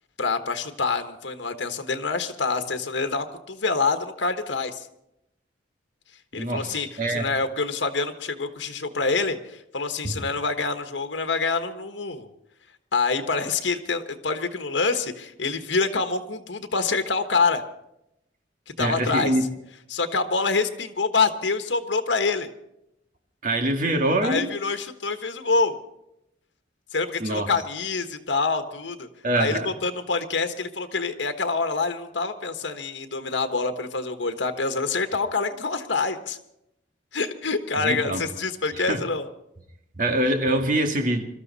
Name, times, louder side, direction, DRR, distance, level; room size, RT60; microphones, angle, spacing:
voice 1, 0.2-4.9 6.3-12.3 12.9-17.6 18.8-19.3 19.9-22.5 24.2-25.8 26.9-29.1 29.3-36.4 37.1-39.3, left 4 dB, 90° left, 1.3 m, -26 dB
voice 2, 6.3-7.3 10.0-10.2 18.8-19.4 23.4-24.5 27.2-27.5 29.2-29.7 37.8-38.3 38.7-39.0 39.9-41.2, right 1 dB, 50° right, 2.0 m, -24 dB
22.5 x 13.0 x 4.1 m
head